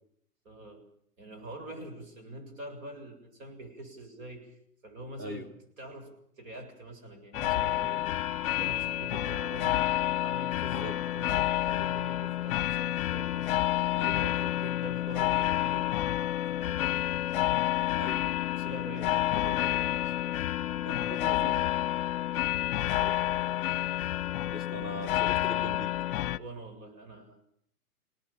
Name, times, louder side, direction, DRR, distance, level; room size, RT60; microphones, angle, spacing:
voice 1, 0.4-0.8 1.2-4.6 4.8-5.5 5.8-8.2 8.6-13.5 14.6-16.2 16.5-17.3 18.5-20.4 20.7-21.8 26.4-27.4, right 1 dB, 55° right, 5 dB, 7.8 m, -45 dB
sound 1, 7.3-26.4, left 14 dB, 40° left, 1.0 m, -29 dB
voice 2, 14.0-14.6 18.0-18.3 20.8-21.5 23.0-23.2 24.5-25.9, equal, 20° right, 6 dB, 2.8 m, -41 dB
27.5 x 18.5 x 8.6 m, 0.67 s
hypercardioid pair, 145°, 46 cm